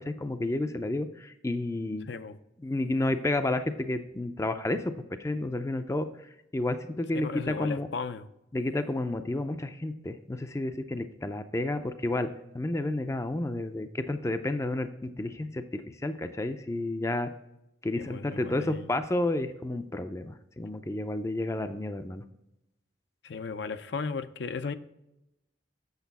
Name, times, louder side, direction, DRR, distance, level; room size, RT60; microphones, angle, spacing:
voice 1, 0.0-2.1 2.6-4.9 5.2-7.9 8.5-12.3 12.5-17.3 17.8-22.2, left 2 dB, 15° left, 9 dB, 0.4 m, -31 dB
voice 2, 2.1-2.4 7.1-8.3 17.9-18.8 23.2-24.7, left 4 dB, 70° left, 10 dB, 0.5 m, -35 dB
8.1 x 6.5 x 4.1 m, 0.88 s
head